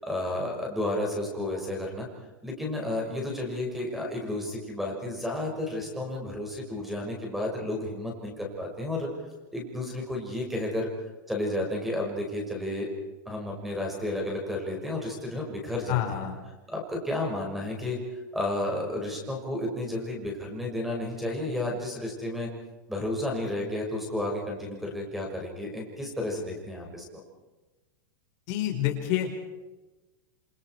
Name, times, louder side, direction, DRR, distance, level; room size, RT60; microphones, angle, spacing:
voice 1, 0.0-2.1 2.4-9.1 9.5-10.9 11.3-12.9 13.3-16.3 16.7-18.0 18.3-22.5 22.9-27.0, left 1 dB, ahead, 0 dB, 6.1 m, -32 dB
voice 2, 15.9-16.4 28.5-29.3, left 12 dB, 40° left, 4 dB, 5.1 m, -28 dB
28.0 x 27.5 x 4.9 m, 1.1 s
supercardioid pair, 160°, 11 cm